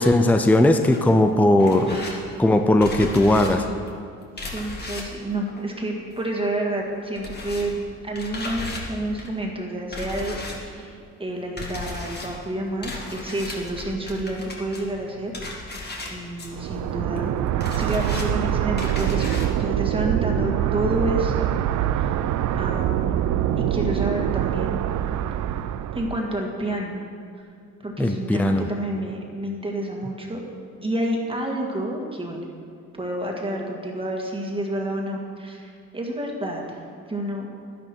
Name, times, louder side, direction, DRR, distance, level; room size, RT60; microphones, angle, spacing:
voice 1, 0.0-2.0 2.4-3.6 28.0-28.6, left 1 dB, 5° left, 6 dB, 0.6 m, -18 dB
sound 1, 0.9-6.5 6.7-19.6, left 2 dB, 35° left, 2.1 m, -37 dB
voice 2, 1.7-2.2 4.5-15.3 16.1-17.3 17.8-21.5 22.0-22.2 22.5-24.8 25.9-27.0 27.8-30.4 30.8-32.5 33.0-36.8 37.1-37.5, right 1 dB, 20° right, -1 dB, 2.0 m, -29 dB
sound 2, 16.5-26.3, right 11 dB, 75° right, 0.5 m, -24 dB
11.5 x 10.5 x 4.5 m, 2.3 s
cardioid pair, 90°, 30 cm